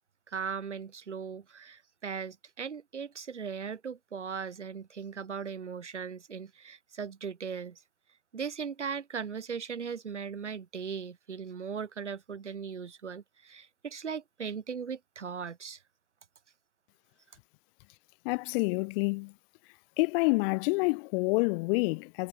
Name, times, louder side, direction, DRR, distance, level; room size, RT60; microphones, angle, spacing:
voice 1, 0.3-7.8 8.3-15.8, right 6 dB, 85° right, 7.7 m, -38 dB
voice 2, 18.2-19.3 20.0-22.3, left 28 dB, 55° left, 1.0 m, -28 dB
figure-of-eight pair, 85°, 34 cm